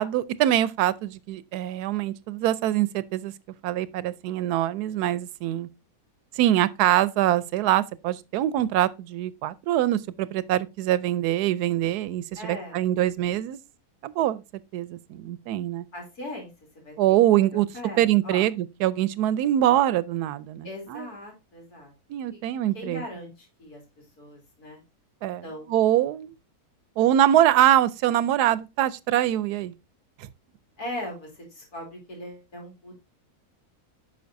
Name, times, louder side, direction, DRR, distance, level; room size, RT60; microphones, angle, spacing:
voice 1, 0.0-3.3 3.6-5.7 6.4-13.6 14.0-14.4 14.7-15.9 17.0-17.7 18.0-21.1 22.1-23.0 25.2-26.3 27.0-29.7, right 12 dB, 85° right, 1.1 m, -24 dB
voice 2, 12.4-12.8 15.9-16.5 16.8-16.9 17.3-18.5 20.6-21.9 22.3-22.4 22.7-23.8 24.2-24.8 25.4-25.9 30.8-33.0, left 1 dB, 80° left, 3.5 m, -39 dB
8.6 x 6.0 x 2.6 m
omnidirectional pair, 1.6 m